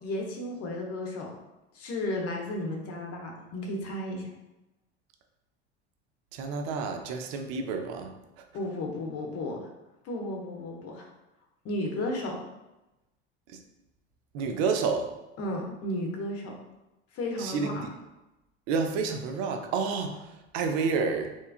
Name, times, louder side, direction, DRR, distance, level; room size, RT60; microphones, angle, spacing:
voice 1, 0.0-1.3 1.7-4.2 8.5-9.7 10.0-11.1 11.6-12.4 15.4-16.5 17.1-17.9, left 1 dB, 50° left, 1 dB, 0.7 m, -33 dB
voice 2, 6.3-8.1 13.5-13.6 14.3-15.1 17.4-17.9 18.7-21.3, right 5 dB, 60° right, 5 dB, 0.5 m, -29 dB
3.0 x 2.3 x 2.3 m, 0.98 s
hypercardioid pair, 80°, 32 cm